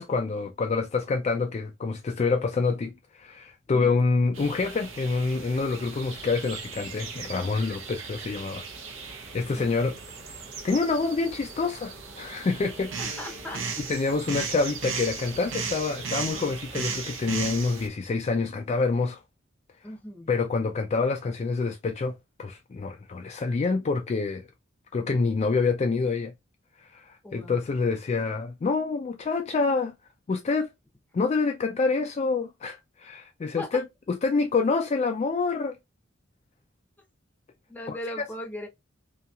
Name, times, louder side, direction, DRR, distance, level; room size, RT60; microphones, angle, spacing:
voice 1, 0.0-8.6 9.3-10.0 10.6-13.2 13.9-19.2 20.3-24.4 24.9-26.3 26.8-29.9 30.3-30.7 31.1-35.8 37.9-38.0, left 4 dB, 35° left, 0.3 m, -27 dB
sound 1, 4.3-17.9, right 5 dB, 75° right, 0.7 m, -37 dB
voice 2, 13.0-13.6 19.8-20.3 27.2-27.6 33.6-33.8 37.7-38.7, left 1 dB, 10° left, 0.7 m, -38 dB
2.8 x 2.7 x 2.3 m
head